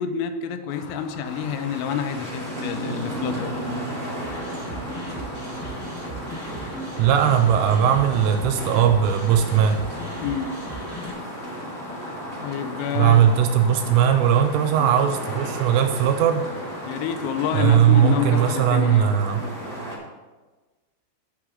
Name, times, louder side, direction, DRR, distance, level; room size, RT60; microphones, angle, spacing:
voice 1, 0.0-3.5 10.2-10.5 12.4-13.2 14.8-14.9 16.8-19.1, left 8 dB, 85° left, 8 dB, 3.2 m, -28 dB
sound 1, 0.7-18.7, left 3 dB, 65° left, 2.8 m, -42 dB
sound 2, 1.2-20.0, right 1 dB, 50° right, 0.8 m, -34 dB
sound 3, 4.2-11.1, right 1 dB, 10° left, 0.9 m, -37 dB
voice 2, 7.0-9.9 13.0-16.5 17.5-19.4, right 9 dB, 80° right, 5 dB, 3.0 m, -19 dB
8.5 x 5.8 x 6.3 m, 1.2 s
omnidirectional pair, 6.0 m